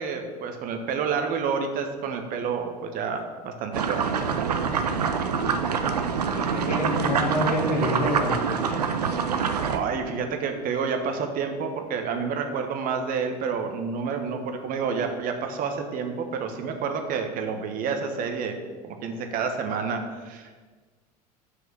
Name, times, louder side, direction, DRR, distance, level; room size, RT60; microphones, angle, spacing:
voice 1, 0.0-4.2 9.7-18.6 18.8-20.6, right 5 dB, 45° right, 5 dB, 1.2 m, -29 dB
sound 1, 3.7-9.8, right 6 dB, 80° right, 0.6 m, -25 dB
voice 2, 6.3-8.4, left 1 dB, 90° left, -1 dB, 1.6 m, -27 dB
6.1 x 4.8 x 6.7 m, 1.4 s
figure-of-eight pair, 75°, 20 cm